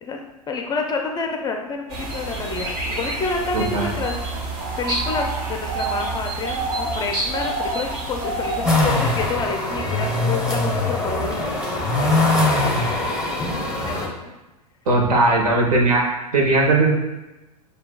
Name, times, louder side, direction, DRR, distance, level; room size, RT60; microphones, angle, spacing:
voice 1, 0.0-4.1 4.8-14.3, left 4 dB, 20° left, 3 dB, 0.5 m, -29 dB
sound 1, 1.9-9.3, right 2 dB, 50° right, 1.1 m, -28 dB
voice 2, 3.5-3.9 14.9-16.9, right 2 dB, 70° right, -1 dB, 1.2 m, -18 dB
sound 2, 8.6-14.1, left 2 dB, 5° right, 1.0 m, -22 dB
6.9 x 2.7 x 2.3 m, 1.0 s
hypercardioid pair, 105°, 20 cm